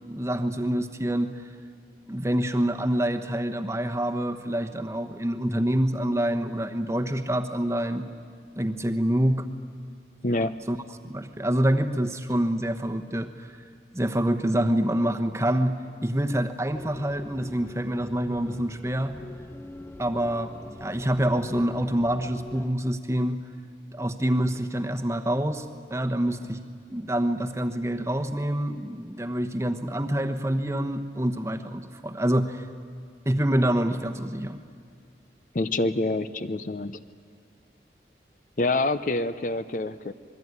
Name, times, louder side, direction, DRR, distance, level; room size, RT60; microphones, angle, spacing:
voice 1, 0.0-1.3 2.1-8.0 8.6-9.5 10.7-10.8 11.0-13.3 13.9-19.2 20.0-23.4 23.9-25.6 25.9-26.6 26.9-32.7 33.2-34.6, right 1 dB, 15° right, 7 dB, 1.1 m, -26 dB
voice 2, 10.2-10.5 35.5-37.0 38.6-40.1, left 2 dB, 45° left, 12 dB, 0.7 m, -26 dB
sound 1, 16.7-22.7, left 2 dB, 15° left, 0.8 m, -44 dB
27.0 x 21.5 x 9.6 m, 2.2 s
head